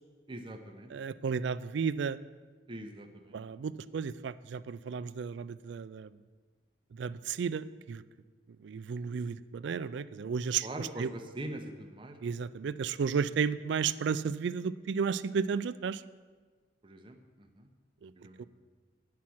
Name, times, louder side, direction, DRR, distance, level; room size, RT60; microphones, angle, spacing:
voice 1, 0.3-0.9 2.7-3.4 10.6-12.4 16.8-17.7 18.2-18.5, right 1 dB, 25° right, 5 dB, 0.8 m, -43 dB
voice 2, 0.9-2.2 3.3-6.1 7.0-8.0 8.6-11.1 12.2-16.0 18.0-18.1 18.4-18.5, right 6 dB, 65° right, 16 dB, 0.3 m, -33 dB
8.5 x 5.8 x 7.7 m, 1.4 s
head